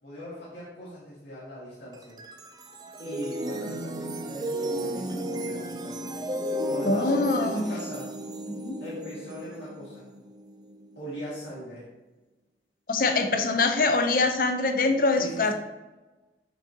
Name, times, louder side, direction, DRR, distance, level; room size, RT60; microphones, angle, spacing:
voice 1, 0.0-2.2 3.0-6.1 6.7-8.1 8.8-10.1 11.0-11.9 15.2-15.5, equal, 85° left, -8 dB, 2.1 m, -40 dB
sound 1, 1.9-11.2, right 1 dB, 25° right, 0.5 m, -34 dB
voice 2, 6.9-7.7 8.5-8.7 12.9-15.5, left 3 dB, 50° left, 6 dB, 0.6 m, -24 dB
6.4 x 6.1 x 2.8 m, 1.1 s
head